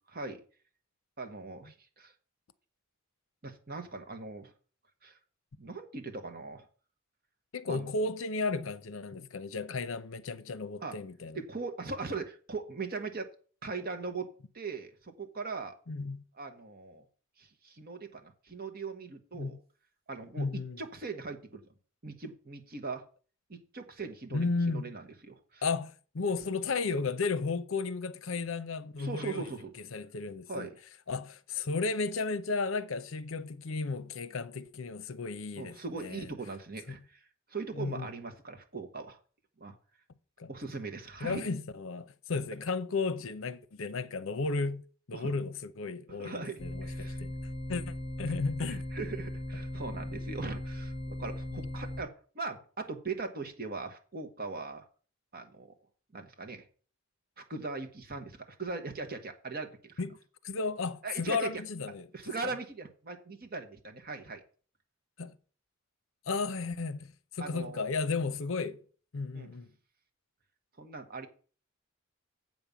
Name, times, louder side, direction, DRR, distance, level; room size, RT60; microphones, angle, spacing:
voice 1, 0.1-0.4 1.2-2.1 3.4-4.5 5.0-5.2 5.6-6.6 7.6-7.9 10.8-11.0 11.3-13.3 13.6-15.7 16.4-17.0 17.4-19.6 20.1-21.6 22.0-23.0 23.5-25.6 29.0-29.7 30.5-30.7 35.6-37.2 37.5-39.2 39.6-39.7 40.5-41.4 45.1-45.3 46.1-47.2 48.7-54.8 55.3-55.7 56.1-56.6 57.4-60.0 61.0-61.5 62.1-64.4 67.4-67.8 69.3-69.5 70.8-71.3, right 4 dB, 45° right, 1.4 m, -40 dB
voice 2, 7.5-11.4 15.9-16.2 19.3-19.6 20.4-20.8 24.3-24.9 25.6-29.5 29.9-30.7 31.1-36.3 36.9-37.0 37.7-38.1 40.4-40.5 41.2-44.8 45.1-47.3 47.7-48.8 60.0-60.2 60.4-62.1 65.2-65.3 66.3-68.8 69.1-69.7, left 4 dB, 70° left, 0.7 m, -34 dB
sound 1, 46.6-52.0, left 1 dB, 35° left, 3.0 m, -38 dB
7.9 x 5.3 x 7.1 m
head